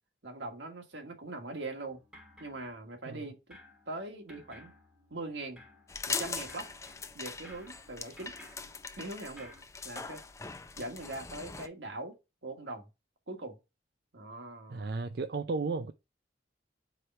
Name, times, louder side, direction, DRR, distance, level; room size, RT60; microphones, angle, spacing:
voice 1, 0.2-2.0 2.4-3.4 3.9-4.7 5.1-5.6 6.1-6.7 7.1-8.3 9.0-9.5 9.8-10.2 10.8-12.2 12.4-12.9 13.3-13.6 14.1-14.9, right 2 dB, 80° right, 1.6 m, -41 dB
sound 1, 1.8-3.2 3.5-9.6, left 1 dB, 5° right, 1.1 m, -56 dB
sound 2, 5.9-11.7, left 4 dB, 15° left, 0.4 m, -41 dB
voice 2, 14.7-15.9, right 3 dB, 55° right, 0.4 m, -34 dB
4.9 x 4.5 x 5.4 m
head